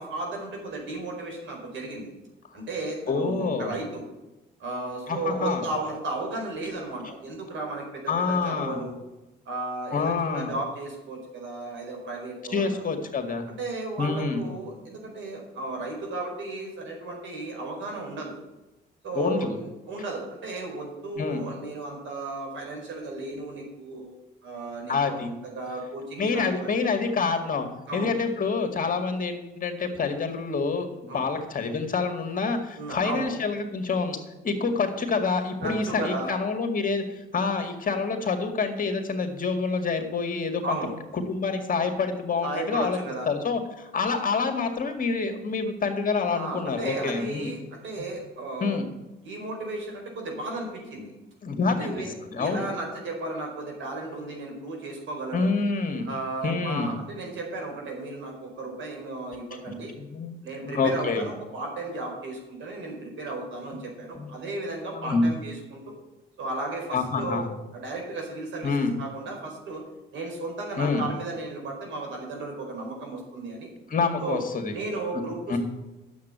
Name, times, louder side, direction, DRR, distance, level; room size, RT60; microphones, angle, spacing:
voice 1, 0.0-2.1 2.5-4.0 4.6-9.0 9.4-12.8 13.5-18.4 19.0-24.2 24.4-26.7 27.9-28.1 31.1-31.2 32.7-33.3 35.6-36.3 40.6-40.9 42.4-43.3 46.3-48.7 49.2-51.1 51.7-55.5 56.1-59.9 60.4-66.0 66.4-67.4 67.7-68.7 69.0-69.8 70.1-73.7 74.2-74.4 74.7-75.6, right 2 dB, 75° right, 1 dB, 4.7 m, -34 dB
voice 2, 3.1-3.8 5.1-5.6 8.1-8.8 9.9-10.5 12.5-13.4 14.0-14.5 19.1-19.6 21.2-21.4 24.9-25.3 26.2-27.7 27.9-30.9 31.1-34.2 34.4-40.8 41.1-43.0 43.3-47.5 48.6-48.9 51.4-52.0 52.3-52.7 55.3-56.1 56.4-57.0 60.0-60.4 60.7-61.3 64.1-64.3 64.9-65.3 66.9-67.5 68.6-68.9 70.8-71.0 73.9-74.7 75.1-75.6, left 4 dB, 45° left, 5 dB, 2.0 m, -27 dB
9.5 x 7.5 x 8.1 m, 1.0 s
cardioid pair, 90°, 20 cm